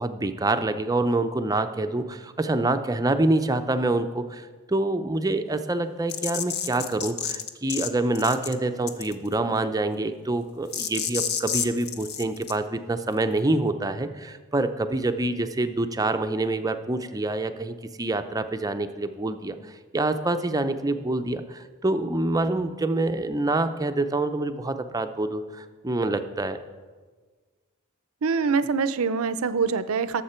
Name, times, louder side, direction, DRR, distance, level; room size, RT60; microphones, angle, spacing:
voice 1, 0.0-26.6, right 2 dB, 15° right, 9 dB, 0.5 m, -26 dB
sound 1, 6.1-7.9 8.1-8.5 8.9-9.3 10.7-12.5, left 8 dB, 50° left, 0.7 m, -29 dB
voice 2, 28.2-30.2, right 5 dB, 75° right, 14 dB, 0.6 m, -24 dB
18.0 x 7.4 x 4.4 m, 1.4 s
head